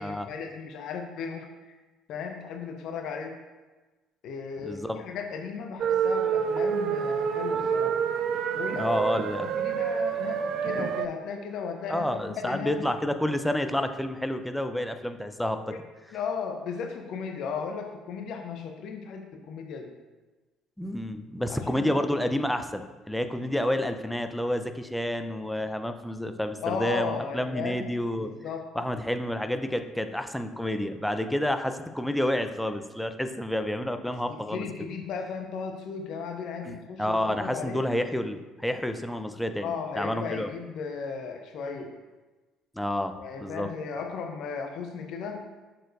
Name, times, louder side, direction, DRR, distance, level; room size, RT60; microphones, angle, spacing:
voice 1, 0.0-1.5 2.1-3.3 4.2-8.0 8.5-9.0 9.4-12.8 15.7-15.8 16.1-19.2 19.5-19.9 21.5-21.9 26.6-27.8 28.2-28.6 34.3-37.8 39.6-41.9 43.2-45.4, left 5 dB, 60° left, 4 dB, 0.7 m, -35 dB
voice 2, 4.6-5.0 8.8-9.5 11.9-15.6 20.8-28.3 28.7-34.7 36.6-40.5 42.7-43.7, left 1 dB, 5° left, 8 dB, 0.6 m, -29 dB
sound 1, 5.8-11.1, right 7 dB, 55° right, 0.4 m, -27 dB
7.5 x 6.7 x 2.6 m, 1.2 s
hypercardioid pair, 55°, 0 cm